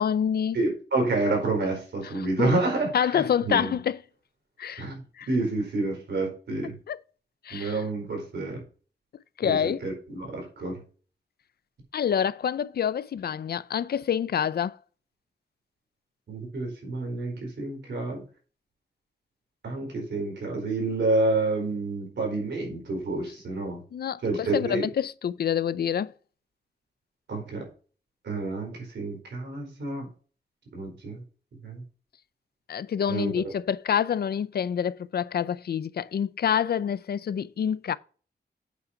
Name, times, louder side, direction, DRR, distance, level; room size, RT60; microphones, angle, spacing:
voice 1, 0.0-0.6 2.2-2.5 2.9-4.0 4.6-4.9 5.2-5.3 6.9-7.0 7.4-7.8 9.4-9.8 11.9-14.8 23.9-26.1 32.7-38.0, left 8 dB, 65° left, 0.5 m, -27 dB
voice 2, 0.5-3.8 4.8-5.0 5.3-6.7 7.5-8.6 9.4-10.8 16.3-18.2 19.6-23.8 24.2-24.9 27.3-27.7 28.2-30.1 30.7-31.2 31.6-31.8 33.1-33.4, right 2 dB, 90° right, 4.3 m, -29 dB
8.3 x 5.0 x 5.8 m
wide cardioid pair, 130°, 17 cm